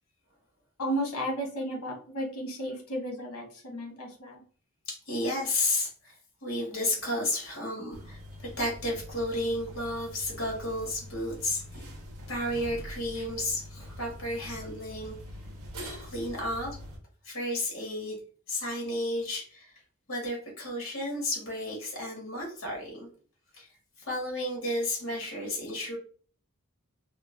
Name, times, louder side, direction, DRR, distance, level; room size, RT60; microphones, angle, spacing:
voice 1, 0.8-4.4, equal, 80° left, 0 dB, 1.0 m, -33 dB
voice 2, 4.9-6.1 6.4-11.9 12.3-15.2 15.8-16.8 17.2-18.2 18.5-19.7 20.1-23.1 23.5-23.7 24.1-26.0, left 1 dB, 60° left, -1 dB, 1.4 m, -32 dB
sound 1, 7.9-17.0, equal, 80° right, 0.6 m, -44 dB
3.0 x 2.0 x 2.5 m, 0.43 s
head